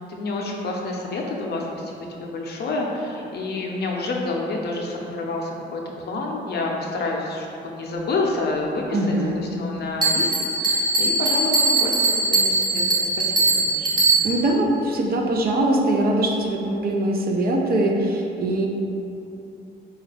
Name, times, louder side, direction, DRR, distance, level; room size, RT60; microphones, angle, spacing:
voice 1, 0.1-14.1, left 2 dB, 55° left, -1 dB, 0.6 m, -29 dB
voice 2, 8.9-9.4 14.2-18.7, right 1 dB, 50° right, 1 dB, 0.5 m, -22 dB
Bell, 10.0-14.5, right 3 dB, 20° right, 0.8 m, -21 dB
4.1 x 2.3 x 3.3 m, 2.8 s
cardioid pair, 90°, 20 cm